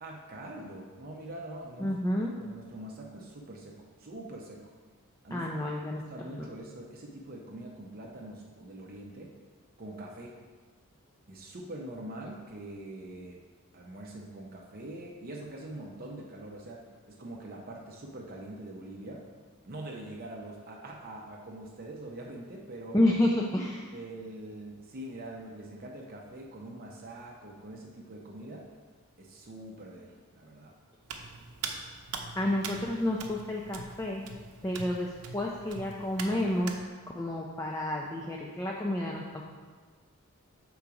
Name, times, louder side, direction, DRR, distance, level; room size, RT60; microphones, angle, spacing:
voice 1, 0.0-4.7 5.2-5.5 5.9-9.4 9.8-10.4 11.3-13.4 13.7-19.3 19.6-23.0 23.9-28.7 29.2-30.7, right 1 dB, 40° right, -1 dB, 0.6 m, -44 dB
voice 2, 1.8-2.3 5.3-6.5 22.9-23.9 32.4-34.2 34.6-36.8 37.1-39.4, left 1 dB, 15° left, -2 dB, 0.4 m, -30 dB
Hands, 31.0-36.8, right 5 dB, 90° right, 0.7 m, -42 dB
7.1 x 3.9 x 4.7 m, 1.5 s
head